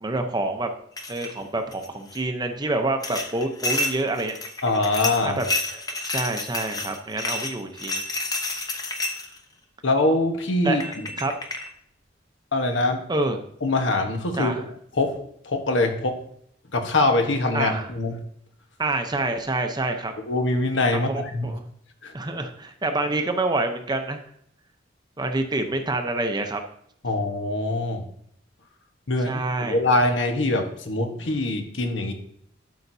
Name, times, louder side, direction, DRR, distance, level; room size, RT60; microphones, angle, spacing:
voice 1, 0.0-0.7 1.1-4.4 5.2-8.0 10.6-11.3 13.1-13.4 14.4-14.6 17.5-17.9 18.8-20.1 20.9-21.6 22.1-24.2 25.2-26.6 29.3-29.8, right 2 dB, 20° right, 6 dB, 0.7 m, -27 dB
sound 1, 1.0-1.4 1.7-2.2 3.0-9.4 10.4-10.5 10.8-11.7, left 2 dB, 20° left, 0.8 m, -30 dB
voice 2, 4.6-5.4 9.8-10.8 12.5-13.0 13.6-14.5 15.0-16.2 16.7-18.1 20.3-21.5 22.0-22.1 27.0-28.0 29.1-32.1, left 2 dB, 70° left, 5 dB, 1.2 m, -23 dB
12.0 x 5.8 x 2.7 m, 0.69 s
head